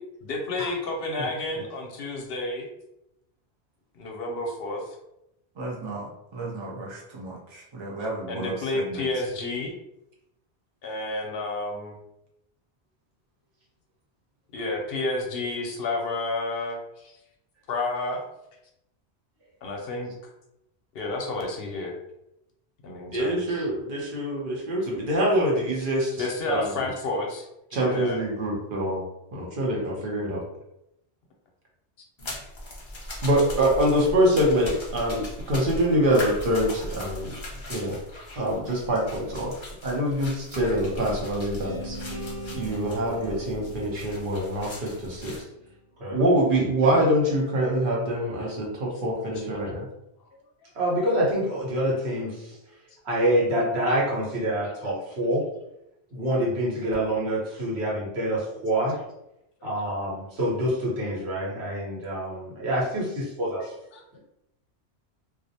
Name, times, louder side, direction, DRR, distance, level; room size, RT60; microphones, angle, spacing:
voice 1, 0.3-2.7 3.9-5.0 8.3-9.7 10.8-11.9 14.5-17.2 17.7-18.2 19.6-20.1 20.9-21.9 22.8-23.7 26.1-28.2 50.6-50.7 63.6-64.2, left 2 dB, 70° left, 1 dB, 0.7 m, -31 dB
voice 2, 5.6-9.1, right 2 dB, 40° right, -3 dB, 0.4 m, -35 dB
voice 3, 23.1-26.7 27.7-29.0 29.3-30.4 33.2-37.3 37.7-38.0 38.4-42.0 42.5-45.3 46.1-49.8, right 1 dB, 55° right, -3 dB, 0.8 m, -25 dB
sound 1, 32.2-45.4, left 1 dB, 35° left, 0.5 m, -39 dB
sound 2, 41.6-45.7, right 1 dB, 5° left, 0.7 m, -40 dB
voice 4, 50.8-52.5 53.0-55.4 56.1-59.0 59.6-63.7, right 1 dB, 75° right, -5 dB, 1.2 m, -26 dB
2.4 x 2.0 x 2.7 m, 0.84 s
omnidirectional pair, 1.1 m